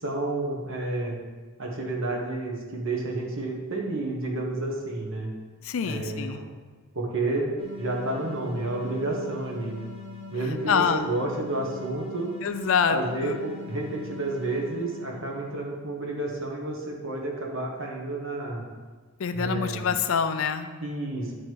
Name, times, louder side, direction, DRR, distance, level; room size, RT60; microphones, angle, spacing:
voice 1, 0.0-1.2 1.6-5.3 5.8-6.5 6.9-7.5 7.8-9.9 10.3-12.3 12.9-18.6 19.3-19.8 20.8-21.3, right 2 dB, 60° right, -1 dB, 1.2 m, -30 dB
voice 2, 5.6-6.4 10.7-11.0 12.4-13.4 19.2-20.7, left 6 dB, 65° left, 10 dB, 0.4 m, -26 dB
sound 1, 7.6-15.7, left 4 dB, 25° right, 1.2 m, -42 dB
8.8 x 3.1 x 4.6 m, 1.4 s
head